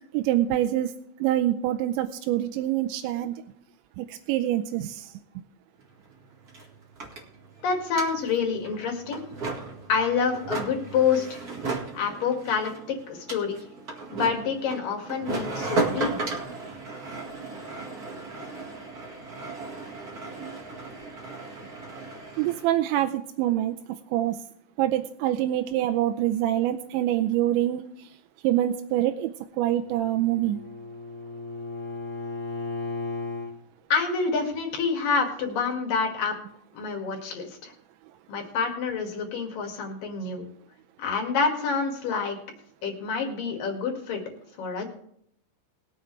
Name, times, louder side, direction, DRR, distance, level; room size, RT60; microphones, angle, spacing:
voice 1, 0.1-0.9 1.2-3.4 4.0-5.1 22.4-23.8 24.1-24.4 24.8-28.1 28.4-29.3 29.6-30.6, right 13 dB, 90° right, 5 dB, 2.9 m, -25 dB
sound 1, 5.8-5.9 6.1-22.7, right 3 dB, 50° right, 1.0 m, -35 dB
voice 2, 7.6-9.2 9.9-11.4 11.9-13.6 14.1-16.4 33.9-36.3 36.7-37.7 38.3-40.4 41.0-42.4 42.8-44.2 44.6-44.8, left 5 dB, 55° left, 2 dB, 3.3 m, -27 dB
Bowed string instrument, 29.7-33.5, left 3 dB, 10° right, 2.9 m, -35 dB
21.5 x 7.9 x 3.3 m, 0.69 s
omnidirectional pair, 5.2 m